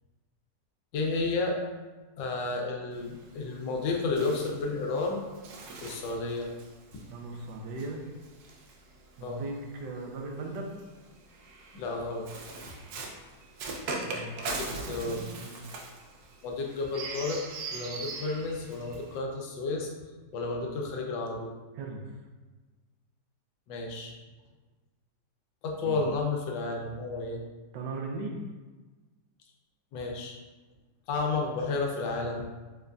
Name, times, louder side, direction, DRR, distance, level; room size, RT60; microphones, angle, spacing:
voice 1, 0.9-1.6 2.2-5.2 5.8-6.5 9.2-9.4 11.7-12.3 14.5-15.2 16.4-17.5 17.7-19.9 20.3-21.5 23.7-24.1 25.6-27.4 29.9-30.4 31.1-32.5, left 3 dB, 85° left, 1 dB, 1.3 m, -31 dB
Bird, 2.9-9.5 10.4-19.2, right 3 dB, 70° right, 1.0 m, -41 dB
voice 2, 7.1-8.0 9.2-10.7 14.0-15.7 21.8-22.1 25.8-26.0 27.7-28.4, right 3 dB, 85° right, 2 dB, 1.3 m, -38 dB
5.2 x 2.5 x 2.2 m, 1.3 s
omnidirectional pair, 1.9 m